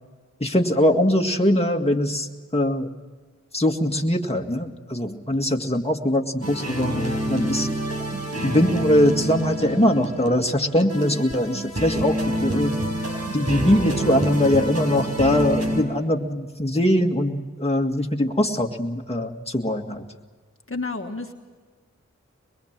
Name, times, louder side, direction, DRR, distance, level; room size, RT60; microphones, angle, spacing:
voice 1, 0.4-2.9 3.5-7.7 8.4-12.8 13.3-20.1, left 1 dB, 20° left, 2 dB, 1.9 m, -22 dB
sound 1, 6.4-15.8, right 1 dB, 60° right, 4.8 m, -28 dB
voice 2, 20.7-21.3, left 3 dB, 45° left, 3 dB, 1.6 m, -30 dB
22.5 x 22.5 x 7.4 m, 1.4 s
wide cardioid pair, 45°, 30 cm